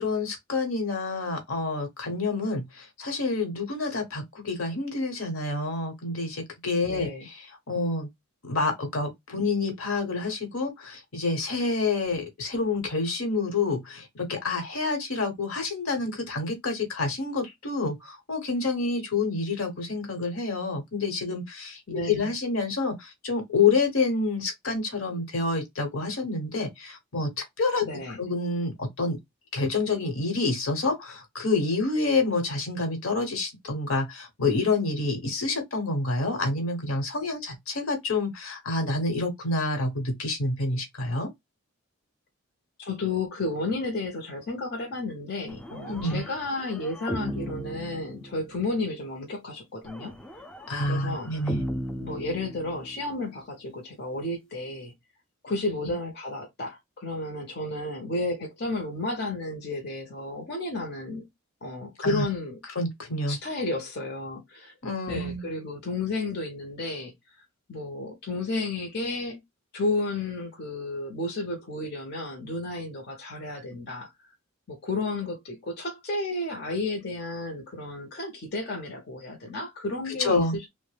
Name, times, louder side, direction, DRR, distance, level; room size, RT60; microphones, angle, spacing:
voice 1, 0.0-8.1 8.4-27.9 28.2-29.2 29.5-41.3 45.9-46.2 50.7-51.6 62.0-62.2 62.7-63.4 64.8-65.5 80.1-80.6, left 3 dB, 75° left, 1.1 m, -28 dB
voice 2, 6.9-7.3 21.9-22.3 27.8-28.2 42.8-50.1 50.8-51.3 52.0-54.9 55.4-61.2 61.6-62.6 63.3-64.7 65.1-67.1 67.7-69.4 69.7-74.1 74.7-80.7, left 2 dB, 50° left, 0.7 m, -32 dB
sound 1, 45.5-48.7 49.8-53.1, equal, 5° left, 0.3 m, -37 dB
3.1 x 2.1 x 3.2 m
head